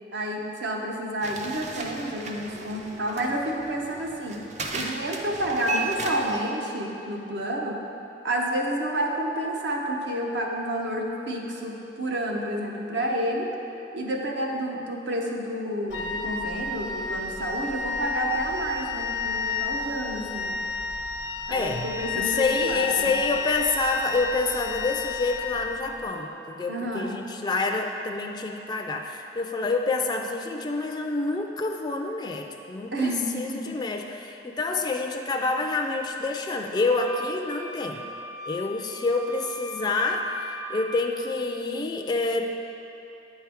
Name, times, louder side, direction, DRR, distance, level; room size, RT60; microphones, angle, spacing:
voice 1, 0.1-4.4 4.7-7.8 8.2-13.5 13.9-20.6 21.5-23.1 26.7-27.2 32.9-33.7, right 1 dB, 70° right, 0 dB, 0.8 m, -30 dB
sound 1, 1.2-6.4, right 2 dB, 40° right, 0.5 m, -35 dB
Wind instrument woodwind instrument, 15.9-26.0, left 4 dB, 75° left, 0.5 m, -31 dB
voice 2, 21.5-38.1 38.5-42.4, left 3 dB, 25° left, 2 dB, 0.3 m, -28 dB
sound 2, 36.7-40.9, equal, 90° right, 0.9 m, -39 dB
8.7 x 4.5 x 3.5 m, 2.9 s
head